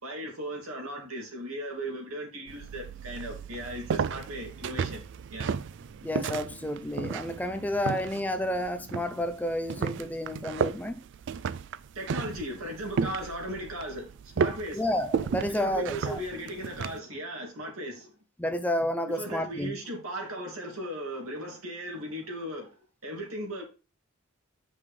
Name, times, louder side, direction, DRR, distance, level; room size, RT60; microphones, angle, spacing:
voice 1, 0.0-5.0 5.3-5.5 11.9-14.8 15.5-18.1 19.2-22.7 23.0-23.6, right 1 dB, 80° right, 2.5 m, -37 dB
sound 1, 2.5-17.0, right 6 dB, 55° right, 0.3 m, -34 dB
voice 2, 6.0-11.0 14.7-16.2 18.4-19.7, left 1 dB, 10° left, 0.4 m, -30 dB
8.4 x 5.4 x 3.3 m
head